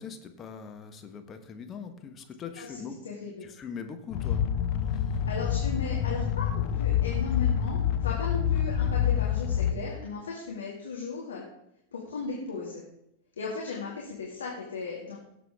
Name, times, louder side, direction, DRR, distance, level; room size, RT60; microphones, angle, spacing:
voice 1, 0.0-2.9 3.6-4.5, left 6 dB, 25° left, 6 dB, 1.3 m, -41 dB
voice 2, 2.6-3.5 5.3-11.4 11.9-12.8 13.4-15.2, left 4 dB, 70° left, -3 dB, 2.1 m, -36 dB
sound 1, 4.1-9.7, left 9 dB, 45° left, 0.9 m, -27 dB
17.0 x 7.5 x 3.6 m, 0.81 s
figure-of-eight pair, 90°, 0 cm